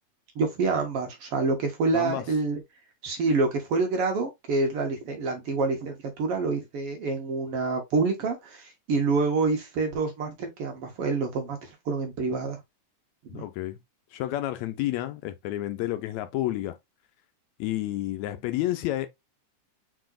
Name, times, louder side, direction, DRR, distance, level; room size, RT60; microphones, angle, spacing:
voice 1, 0.4-2.6 3.0-12.6 13.3-13.5, right 3 dB, 60° right, 1.8 m, -27 dB
voice 2, 1.9-2.4 13.3-13.8 14.1-16.8 17.6-19.1, left 15 dB, 80° left, 1.8 m, -30 dB
4.7 x 4.1 x 2.4 m
omnidirectional pair, 3.3 m